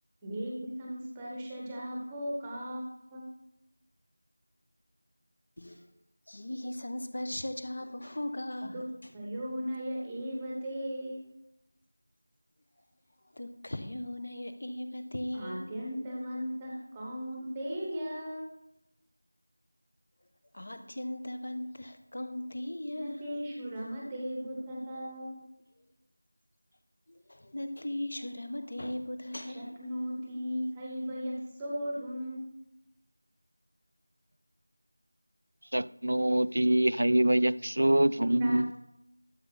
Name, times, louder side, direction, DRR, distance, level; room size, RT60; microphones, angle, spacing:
voice 1, 0.2-3.3 8.6-8.8 9.1-11.2 15.3-18.5 23.0-25.4 29.4-32.5 38.4-38.7, equal, 5° right, 1.0 m, -37 dB
voice 2, 5.6-5.9 6.3-8.7 13.3-15.7 20.5-23.2 27.1-29.8, left 1 dB, 45° left, 0.9 m, -38 dB
voice 3, 35.7-38.7, right 1 dB, 60° right, 0.3 m, -25 dB
12.0 x 7.2 x 3.9 m
figure-of-eight pair, 180°, 0 cm